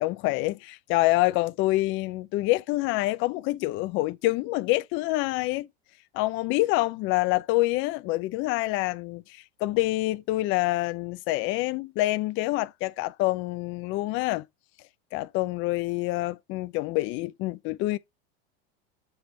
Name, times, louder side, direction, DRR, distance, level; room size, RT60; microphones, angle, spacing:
voice 1, 0.0-5.7 6.1-14.4 15.1-18.0, left 19 dB, 40° left, 0.5 m, -26 dB
7.0 x 3.3 x 4.4 m
supercardioid pair, 135°, 30 cm